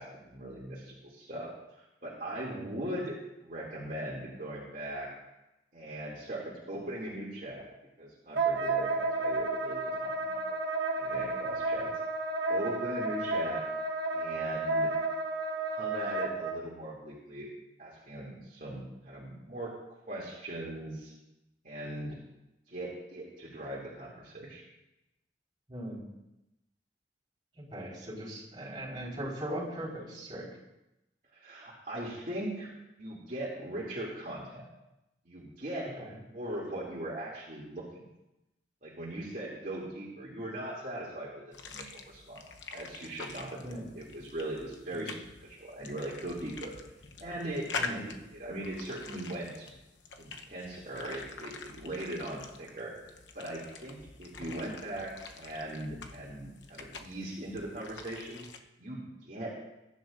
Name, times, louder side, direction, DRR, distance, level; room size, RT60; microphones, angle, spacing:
voice 1, 0.0-5.1 5.7-7.6 8.0-10.6 11.0-11.9 12.5-13.6 14.1-14.9 15.6-17.5 17.8-19.7 20.1-21.1 21.6-22.2 22.7-24.6 31.3-32.7 33.0-34.6 35.2-35.9 36.2-38.1 38.8-42.4 42.7-46.7 47.2-49.7 50.2-53.0 53.3-58.5 58.8-59.6, right 1 dB, 45° right, -7 dB, 2.6 m, -40 dB
Wind instrument woodwind instrument, 8.3-16.5, right 2 dB, 70° right, 1.3 m, -32 dB
voice 2, 25.7-26.1 27.7-30.5 36.0-36.2 43.6-43.9 44.9-45.1 47.8-48.0, right 1 dB, 25° right, -6 dB, 4.4 m, -39 dB
sound 1, 41.5-58.6, left 4 dB, 85° left, 0.9 m, -45 dB
21.5 x 11.0 x 2.6 m, 0.95 s
head